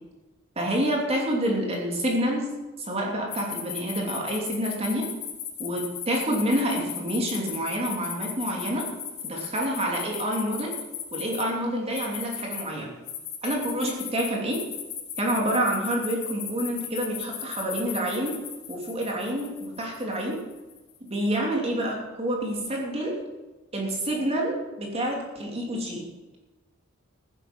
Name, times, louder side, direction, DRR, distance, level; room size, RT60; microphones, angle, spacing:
voice 1, 0.6-2.5 2.8-5.1 5.6-8.9 9.2-10.7 11.1-12.9 13.4-14.6 15.2-18.4 18.7-20.4 21.1-23.2 23.7-26.0, right 1 dB, 30° right, -1 dB, 3.0 m, -28 dB
sound 1, 3.3-11.4 11.9-12.6 13.1-20.9, left 9 dB, 80° left, 3.9 m, -36 dB
15.0 x 10.5 x 6.0 m, 1.1 s
head